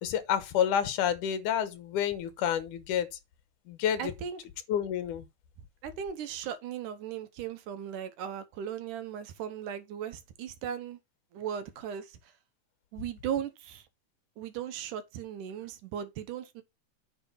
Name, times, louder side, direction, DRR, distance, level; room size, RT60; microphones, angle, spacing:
voice 1, 0.0-3.1 3.7-4.1 4.7-5.2, left 9 dB, 80° left, 2.6 m, -29 dB
voice 2, 4.0-4.4 5.8-11.0 11.3-12.1 12.9-13.8 14.4-16.6, right 9 dB, 80° right, 2.6 m, -37 dB
8.9 x 4.3 x 5.7 m
omnidirectional pair, 3.6 m